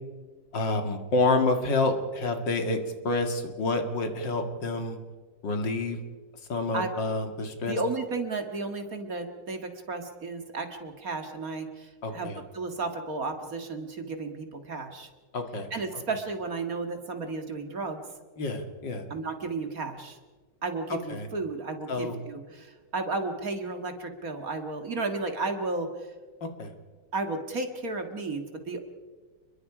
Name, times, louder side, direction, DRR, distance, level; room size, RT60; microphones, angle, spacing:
voice 1, 0.5-2.8 3.0-5.0 5.4-6.0 6.5-7.8 12.0-12.4 15.3-15.7 18.4-19.0 20.9-21.3 21.9-22.2 26.4-26.7, left 2 dB, 70° left, 5 dB, 2.7 m, -28 dB
voice 2, 7.7-15.1 15.7-18.0 19.1-20.2 20.6-26.1 27.1-28.8, right 3 dB, 50° right, 6 dB, 2.2 m, -33 dB
29.5 x 22.0 x 5.0 m, 1.4 s
omnidirectional pair, 2.1 m